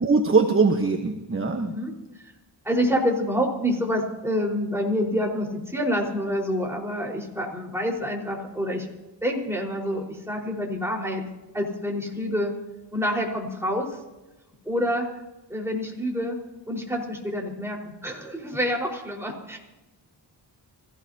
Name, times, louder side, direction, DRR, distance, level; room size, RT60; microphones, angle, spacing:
voice 1, 0.0-1.8, right 4 dB, 30° right, 5 dB, 1.3 m, -21 dB
voice 2, 1.5-1.9 2.2-2.3 2.6-8.9 9.2-11.2 11.5-12.5 12.9-14.0 14.6-15.1 15.5-16.4 16.7-17.8 18.0-19.6, equal, 5° right, -2 dB, 4.7 m, -27 dB
26.0 x 16.0 x 2.9 m, 1.0 s
cardioid pair, 85°, 43 cm